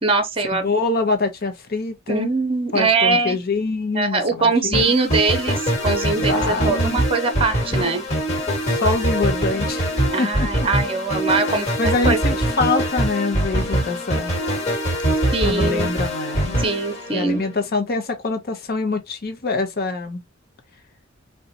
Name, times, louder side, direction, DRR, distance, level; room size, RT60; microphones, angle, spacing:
voice 1, 0.0-0.7 2.1-3.4 3.9-8.0 10.1-12.2 15.3-15.9 16.6-17.4, right 3 dB, 30° right, 0.8 m, -22 dB
voice 2, 0.6-2.3 2.7-4.8 6.2-7.0 8.7-9.9 10.2-10.5 11.8-14.4 15.4-16.6 17.1-20.2, left 3 dB, 50° left, 0.7 m, -25 dB
sound 1, 4.7-17.7, right 1 dB, 35° left, 1.4 m, -23 dB
3.8 x 2.2 x 2.7 m
head